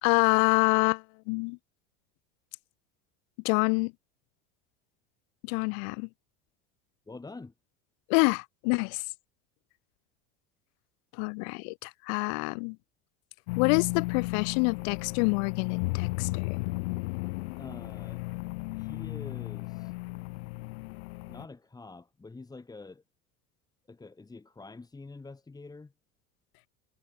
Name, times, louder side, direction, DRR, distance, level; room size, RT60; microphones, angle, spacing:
voice 1, 0.0-1.6 3.4-3.9 5.4-6.1 8.1-9.0 11.2-12.8 13.6-16.5, left 40 dB or more, 70° left, 1.1 m, -27 dB
voice 2, 7.1-7.5 17.6-18.2 18.7-19.9 21.3-23.0 23.9-25.9, left 3 dB, 10° left, 2.6 m, -46 dB
sound 1, 13.5-21.5, left 25 dB, 90° left, 0.5 m, -34 dB
supercardioid pair, 120°, 31 cm